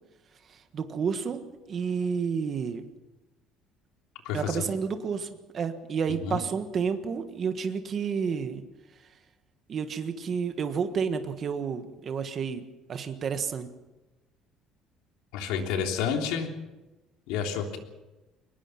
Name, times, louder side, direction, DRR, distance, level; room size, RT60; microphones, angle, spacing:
voice 1, 0.5-1.4 1.7-2.8 4.3-8.6 9.7-12.6 12.9-13.7, right 6 dB, 30° right, 8 dB, 1.5 m, -30 dB
voice 2, 4.2-4.6 6.2-6.4 15.3-16.5 17.3-17.8, left 7 dB, 90° left, 3 dB, 3.3 m, -29 dB
22.5 x 20.5 x 5.9 m, 1.1 s
cardioid pair, 180°, 0 cm